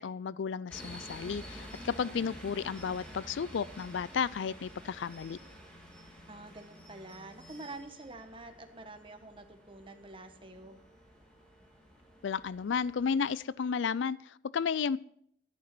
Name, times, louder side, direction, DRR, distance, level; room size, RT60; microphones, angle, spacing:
voice 1, 0.0-5.4 12.2-15.0, left 6 dB, 75° left, 0.4 m, -33 dB
sound 1, 0.7-13.3, equal, 5° left, 2.8 m, -50 dB
voice 2, 6.3-10.8, right 2 dB, 25° right, 1.3 m, -47 dB
11.5 x 10.5 x 6.0 m
head